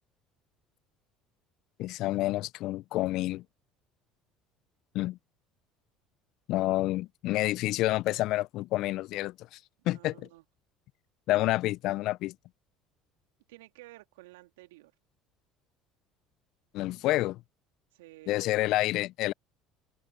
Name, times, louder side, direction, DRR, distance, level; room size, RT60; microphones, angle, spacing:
voice 1, 1.8-3.4 4.9-5.2 6.5-9.6 9.9-10.1 11.3-12.3 16.7-17.4 18.3-19.3, left 17 dB, 60° left, 0.6 m, -28 dB
voice 2, 9.8-10.4 13.5-14.9 17.9-18.4, right 19 dB, 75° right, 2.4 m, -52 dB
open air
hypercardioid pair, 65°, 0 cm